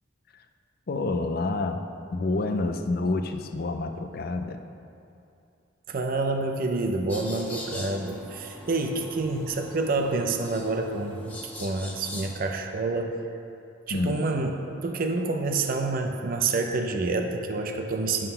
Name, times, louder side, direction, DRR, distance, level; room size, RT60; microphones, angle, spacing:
voice 1, 0.9-4.6 13.9-14.2, left 2 dB, 50° left, 7 dB, 0.5 m, -28 dB
voice 2, 5.9-13.2 13.9-18.3, right 3 dB, 50° right, 4 dB, 0.5 m, -28 dB
sound 1, 7.1-12.3, left 1 dB, 10° left, 0.8 m, -42 dB
11.0 x 3.8 x 5.5 m, 2.6 s
head